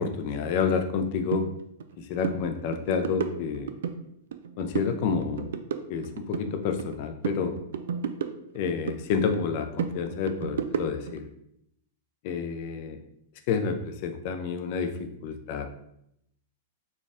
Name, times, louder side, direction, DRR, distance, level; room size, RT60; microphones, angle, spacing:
voice 1, 0.0-1.5 2.0-3.8 4.6-5.5 5.9-7.6 8.5-11.3 12.2-13.0 13.5-15.7, left 6 dB, 50° left, 7 dB, 0.5 m, -29 dB
sound 1, 1.3-1.4 1.8-2.0 2.2-2.4 2.7-4.0 4.3-4.9 5.2-7.0 7.2-9.0 9.3-11.2, right 7 dB, 80° right, 0.3 m, -32 dB
4.3 x 2.3 x 3.5 m, 0.76 s
hypercardioid pair, 130°, 0 cm